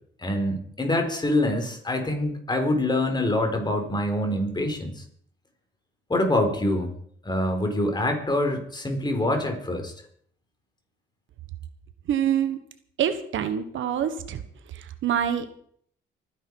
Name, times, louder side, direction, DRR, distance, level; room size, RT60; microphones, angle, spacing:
voice 1, 0.2-5.0 6.1-6.9 7.2-9.9, left 1 dB, 20° left, 5 dB, 4.2 m, -25 dB
voice 2, 12.1-12.6 13.0-14.4 14.7-15.6, right 9 dB, 75° right, 10 dB, 1.5 m, -26 dB
25.0 x 10.0 x 4.8 m, 0.63 s
cardioid pair, 90°, 20 cm